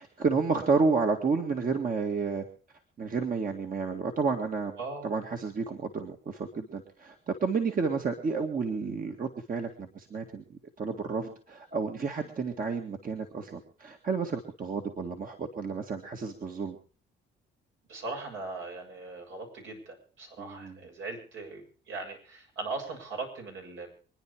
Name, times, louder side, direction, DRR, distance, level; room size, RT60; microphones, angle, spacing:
voice 1, 0.0-2.4 3.0-4.8 5.0-10.4 10.8-16.8 20.4-20.8, right 4 dB, 45° right, 3 dB, 2.0 m, -31 dB
voice 2, 17.9-23.9, right 3 dB, 75° right, 1 dB, 7.2 m, -39 dB
25.0 x 10.0 x 4.9 m, 0.40 s
cardioid pair, 90°, 20 cm